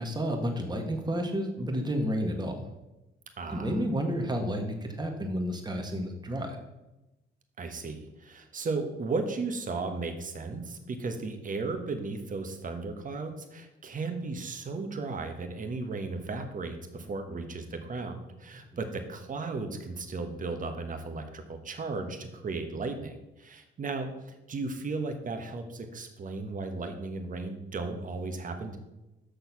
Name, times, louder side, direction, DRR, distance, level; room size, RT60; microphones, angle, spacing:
voice 1, 0.0-2.7 3.5-6.6, equal, 20° right, 3 dB, 1.7 m, -31 dB
voice 2, 3.4-3.8 7.6-28.8, right 3 dB, 40° right, 6 dB, 1.4 m, -35 dB
6.7 x 6.3 x 6.0 m, 0.99 s
cardioid pair, 90°, 20 cm